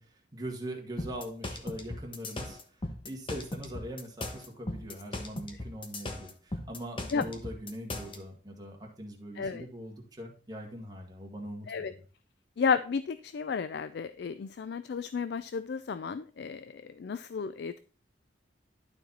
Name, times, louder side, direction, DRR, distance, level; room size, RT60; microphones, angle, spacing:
voice 1, 0.0-12.0, equal, 20° right, 0 dB, 1.9 m, -42 dB
sound 1, 1.0-8.2, left 2 dB, 30° left, 1.0 m, -38 dB
voice 2, 12.6-17.8, left 5 dB, 60° left, 13 dB, 0.4 m, -32 dB
11.5 x 4.4 x 4.1 m, 0.38 s
head